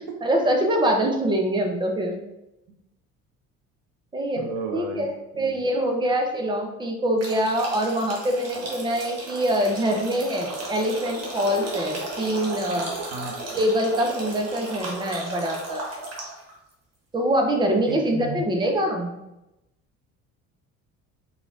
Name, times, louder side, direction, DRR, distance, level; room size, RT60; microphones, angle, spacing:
voice 1, 0.2-2.2 4.1-12.9 13.5-15.9 17.1-19.2, right 1 dB, 10° right, 3 dB, 0.6 m, -24 dB
voice 2, 4.4-5.0 5.3-5.6 13.1-13.6 17.9-18.5, right 3 dB, 85° right, 3 dB, 0.6 m, -33 dB
sound 1, 7.2-16.5, right 2 dB, 35° right, 1.2 m, -35 dB
4.8 x 2.3 x 2.5 m, 0.92 s
figure-of-eight pair, 50°, 42 cm